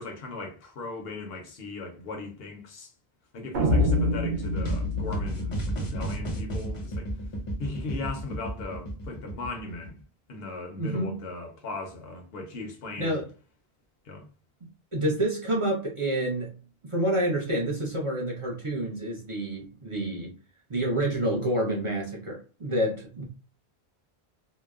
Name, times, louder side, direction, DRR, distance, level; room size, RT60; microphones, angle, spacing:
voice 1, 0.0-2.9 3.3-7.1 7.6-10.0 10.3-13.2 14.0-14.3, left 3 dB, 70° left, 0.9 m, -38 dB
sound 1, 3.5-6.6, left 1 dB, 80° right, 0.9 m, -27 dB
voice 2, 3.6-3.9 10.8-11.2 13.0-13.3 14.9-16.6 16.8-20.3 20.7-23.2, right 1 dB, 35° right, 0.6 m, -28 dB
sound 2, 4.3-10.0, right 1 dB, 35° left, 0.6 m, -32 dB
2.9 x 2.0 x 2.3 m
omnidirectional pair, 1.0 m